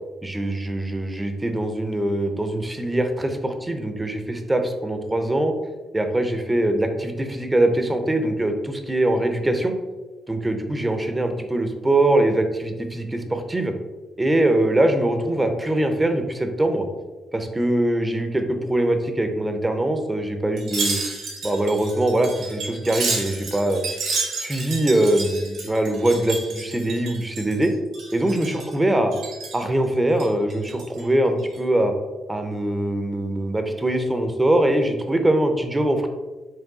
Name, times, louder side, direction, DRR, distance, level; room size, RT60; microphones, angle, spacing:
voice 1, 0.2-5.5 5.9-9.7 10.3-13.7 14.2-16.8 17.3-21.0 21.4-23.8 24.4-27.7 28.1-29.1 29.5-31.9 32.3-36.1, right 1 dB, 15° right, 6 dB, 0.5 m, -22 dB
Wind chime, 20.6-27.7 27.9-28.7 29.1-29.6 30.1-31.0 31.4-31.6, right 4 dB, 80° right, 1.5 m, -31 dB
4.5 x 2.2 x 3.8 m, 1.2 s
cardioid pair, 90°, 0 cm